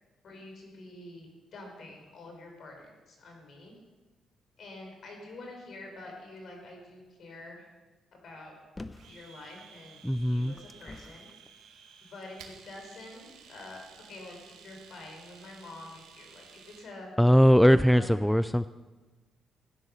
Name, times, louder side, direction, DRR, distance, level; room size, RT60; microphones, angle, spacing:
voice 1, 0.2-3.7 4.6-7.7 8.2-8.5 9.1-10.0 10.3-11.3 12.1-14.4 14.6-17.1 17.8-18.1, left 2 dB, 60° left, 2 dB, 5.0 m, -47 dB
sound 1, 8.8-9.2 10.0-11.4 12.1-12.2, left 2 dB, 20° left, 0.8 m, -46 dB
Domestic sounds home sounds, 9.0-16.9, right 7 dB, 85° right, 1.8 m, -54 dB
voice 2, 10.0-10.5 17.2-18.7, equal, 5° left, 14 dB, 0.4 m, -21 dB
15.0 x 10.0 x 6.6 m, 1.2 s
cardioid pair, 90°, 0 cm